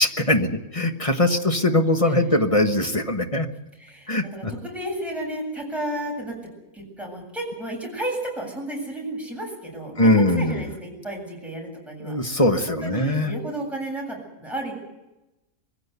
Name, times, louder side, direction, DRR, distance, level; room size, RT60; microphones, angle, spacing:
voice 1, 0.0-3.5 4.1-4.5 10.0-10.6 12.0-13.3, left 1 dB, 25° left, 5 dB, 1.3 m, -21 dB
voice 2, 3.8-6.4 6.7-14.7, right 1 dB, ahead, -1 dB, 7.9 m, -33 dB
23.0 x 16.0 x 8.3 m, 0.99 s
omnidirectional pair, 1.5 m